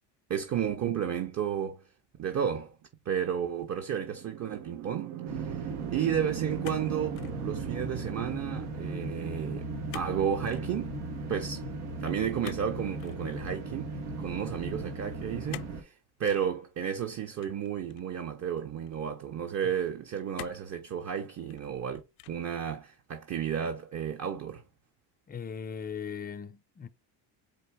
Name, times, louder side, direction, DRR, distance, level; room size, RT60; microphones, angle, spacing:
voice 1, 0.3-1.8 2.2-2.8 3.1-11.0 11.3-11.6 12.0-22.0 22.3-24.6, right 8 dB, 35° right, 0.8 m, -32 dB
sound 1, 4.1-9.1, right 11 dB, 70° right, 0.8 m, -39 dB
sound 2, 5.2-15.8, right 2 dB, 90° right, 1.1 m, -37 dB
sound 3, 6.6-7.4 7.7-8.2 9.9-10.2 10.4-10.7 12.4-13.2 15.5-15.8 16.2-16.5 17.4-18.2 18.9-19.0 20.3-20.7 21.3-21.8 22.2-22.5, left 19 dB, 85° left, 0.5 m, -45 dB
voice 2, 25.3-26.9, left 7 dB, 20° left, 0.4 m, -39 dB
4.5 x 2.5 x 4.5 m
supercardioid pair, 85°, 45 cm